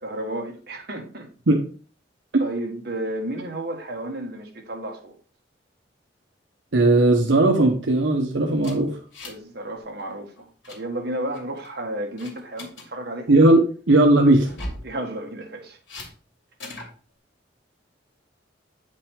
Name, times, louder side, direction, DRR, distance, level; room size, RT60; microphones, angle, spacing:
voice 1, 0.0-1.3 2.4-5.1 9.2-10.3 10.7-13.3 14.8-15.8, right 1 dB, 60° right, 1.6 m, -32 dB
voice 2, 6.7-9.0 13.3-14.5, right 2 dB, 85° right, 1.0 m, -17 dB
sound 1, 8.6-9.5 9.8-10.0 10.4-10.8 11.3-11.7 12.2-12.9 14.4-14.9 15.9-16.1 16.6-16.9, left 1 dB, 85° left, 2.7 m, -38 dB
8.9 x 5.3 x 3.6 m
head